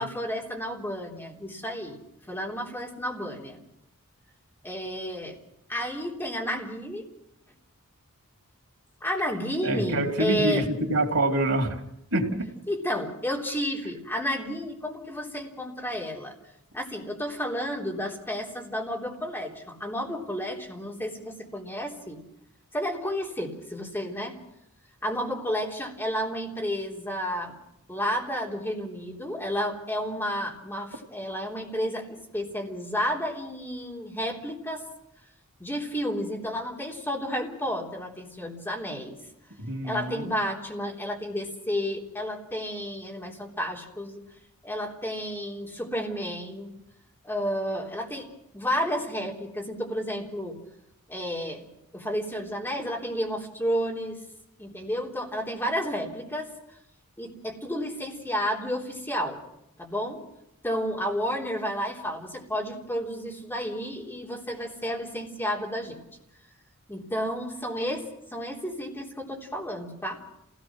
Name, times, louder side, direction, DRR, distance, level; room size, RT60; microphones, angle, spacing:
voice 1, 0.0-2.0 2.3-3.6 4.6-5.4 5.7-7.0 9.0-10.7 12.7-16.3 16.7-22.2 22.7-24.4 25.0-27.6 27.9-34.8 35.6-39.2 39.8-44.2 44.6-46.7 47.2-48.3 48.5-50.6 51.1-51.6 51.9-54.2 54.6-56.5 57.2-59.4 59.8-60.2 60.6-66.0 66.9-68.0 68.3-70.2, equal, 10° left, -1 dB, 3.5 m, -31 dB
voice 2, 9.6-10.6 10.9-11.8 12.1-12.5 39.7-40.3, right 2 dB, 90° right, 1 dB, 2.9 m, -26 dB
27.5 x 17.5 x 6.2 m, 0.81 s
head